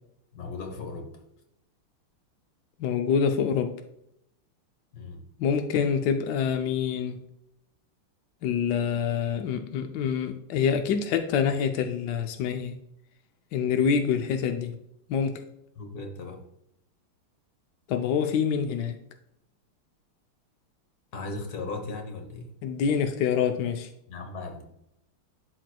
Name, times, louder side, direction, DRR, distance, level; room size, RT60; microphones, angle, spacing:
voice 1, 0.3-1.1 4.9-5.2 15.8-16.4 21.1-22.5 24.1-24.6, left 3 dB, 50° left, 3 dB, 1.4 m, -37 dB
voice 2, 2.8-3.7 5.4-7.2 8.4-12.8 13.5-14.7 15.1-15.4 17.9-19.0 22.6-23.9, left 7 dB, 80° left, 6 dB, 0.9 m, -26 dB
11.5 x 4.6 x 2.3 m, 0.79 s
omnidirectional pair, 2.4 m